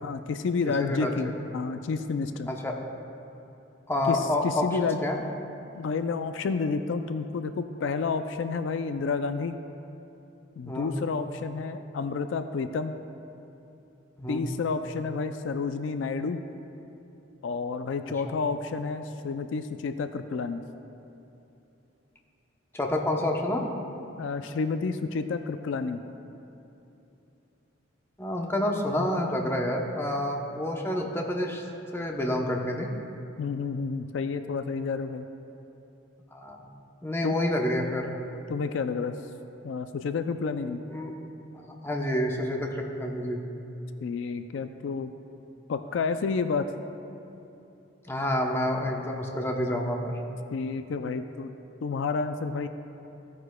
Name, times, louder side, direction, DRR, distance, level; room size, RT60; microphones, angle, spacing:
voice 1, 0.0-2.5 4.1-5.0 5.7-9.6 10.6-13.0 14.3-16.4 17.4-20.6 24.2-26.0 33.4-35.3 37.2-37.3 38.5-39.1 39.6-40.8 44.0-45.1 45.7-46.7 50.5-51.5 51.8-52.7, left 4 dB, 75° left, 9 dB, 0.4 m, -30 dB
voice 2, 0.8-1.1 2.5-2.7 3.9-5.2 10.7-11.0 14.2-14.4 18.0-18.3 22.7-23.6 28.2-31.6 31.9-32.9 36.3-36.7 37.0-38.1 40.9-41.1 41.5-43.4 48.1-50.1, left 1 dB, 10° left, 0 dB, 0.8 m, -28 dB
15.0 x 9.4 x 2.2 m, 2.9 s
head